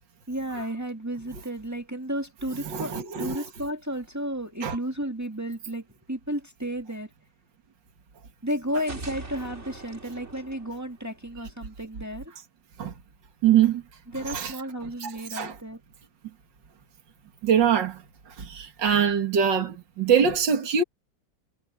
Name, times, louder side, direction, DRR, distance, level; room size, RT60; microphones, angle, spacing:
voice 1, 0.3-7.1 8.4-12.3 14.1-15.8, equal, 10° right, 1.7 m, -33 dB
voice 2, 2.6-3.4 4.6-4.8 12.8-12.9 13.4-13.8 14.3-14.5 15.0-15.6 17.4-18.0 18.4-20.8, right 8 dB, 65° right, 2.7 m, -23 dB
sound 1, 8.7-11.6, right 3 dB, 35° right, 2.9 m, -42 dB
omnidirectional pair, 2.1 m